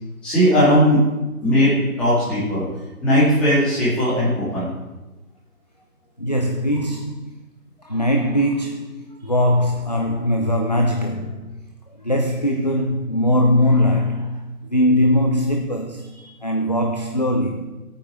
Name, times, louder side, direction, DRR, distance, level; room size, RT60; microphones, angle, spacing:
voice 1, 0.2-1.1 1.4-2.7 3.0-4.7, equal, ahead, -12 dB, 2.4 m, -18 dB
voice 2, 6.2-7.3 7.8-11.5 12.0-14.4 14.7-17.7, left 1 dB, 30° left, 3 dB, 0.6 m, -21 dB
16.0 x 8.7 x 6.3 m, 1.1 s
figure-of-eight pair, 160°, 45 cm